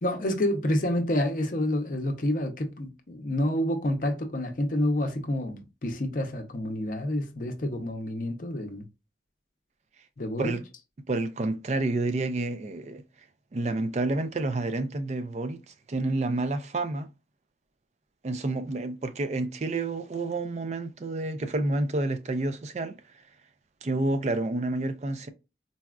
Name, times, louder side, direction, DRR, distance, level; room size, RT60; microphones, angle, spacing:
voice 1, 0.0-8.8 10.2-10.6, left 1 dB, 50° left, 0.6 m, -28 dB
voice 2, 11.1-13.0 13.5-15.6 15.9-17.1 18.2-23.0 23.8-25.3, right 2 dB, 40° right, 0.4 m, -29 dB
4.0 x 2.3 x 2.3 m
head